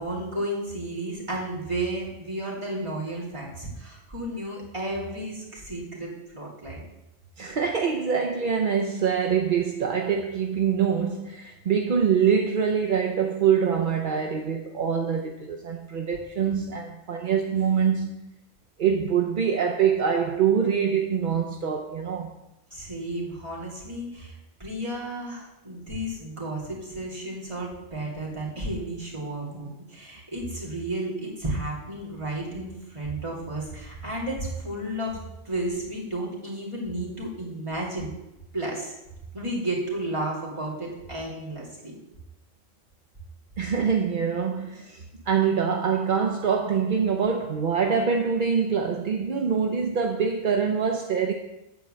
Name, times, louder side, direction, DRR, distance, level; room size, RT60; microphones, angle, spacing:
voice 1, 0.0-6.8 22.7-35.2 35.4-38.1 38.5-38.9 39.3-42.0, right 1 dB, 25° right, -5 dB, 2.6 m, -32 dB
voice 2, 7.4-18.1 18.8-22.3 43.6-51.3, right 7 dB, 50° right, 3 dB, 0.7 m, -24 dB
9.4 x 4.5 x 7.4 m, 0.94 s
omnidirectional pair, 1.3 m